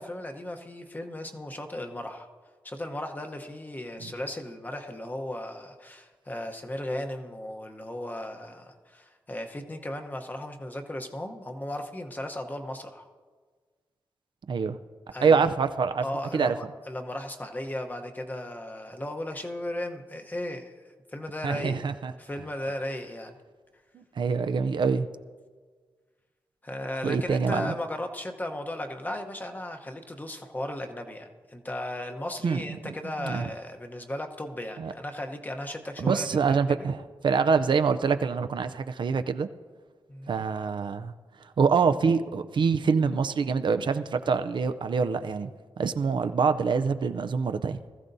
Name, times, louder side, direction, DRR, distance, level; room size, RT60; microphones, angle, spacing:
voice 1, 0.0-2.3 2.6-13.1 15.1-15.4 16.0-20.7 21.1-21.8 22.2-23.4 26.6-36.9 40.1-40.3, left 1 dB, 20° left, 4 dB, 0.9 m, -36 dB
voice 2, 15.2-16.0 16.3-16.6 21.4-22.1 23.9-25.1 27.0-27.7 32.4-32.6 33.2-33.5 34.8-34.9 36.0-39.5 40.3-41.1 41.6-45.5 45.8-47.8, right 5 dB, 60° right, 10 dB, 0.5 m, -25 dB
20.0 x 14.5 x 2.7 m, 1.5 s
wide cardioid pair, 125°, 9 cm